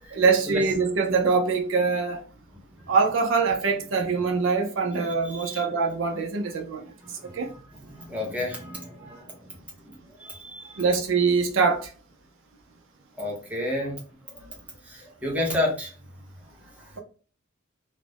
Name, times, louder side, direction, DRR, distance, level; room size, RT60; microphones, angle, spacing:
voice 1, 0.1-2.2 2.9-6.8 7.3-7.5 10.8-11.9, right 4 dB, 65° right, 0.5 m, -23 dB
voice 2, 5.1-5.7 7.0-9.3 9.8-10.8 13.2-14.0 14.3-14.4 14.9-15.9, left 1 dB, 5° right, 0.7 m, -32 dB
2.4 x 2.0 x 3.2 m
head